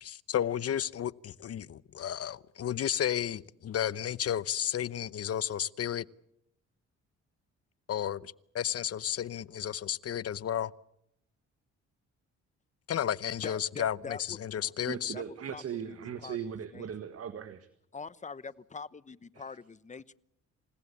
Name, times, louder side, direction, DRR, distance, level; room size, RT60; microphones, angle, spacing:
voice 1, 0.0-6.1 7.9-10.7 12.9-15.1, left 10 dB, 50° left, 19 dB, 0.9 m, -32 dB
voice 2, 13.4-14.7 15.1-15.2 15.5-16.4 16.7-16.9 17.9-20.1, left 4 dB, 25° left, 18 dB, 1.0 m, -44 dB
voice 3, 14.9-17.7, right 8 dB, 50° right, 11 dB, 1.7 m, -38 dB
28.0 x 17.5 x 8.4 m, 0.76 s
cardioid pair, 90°, 30 cm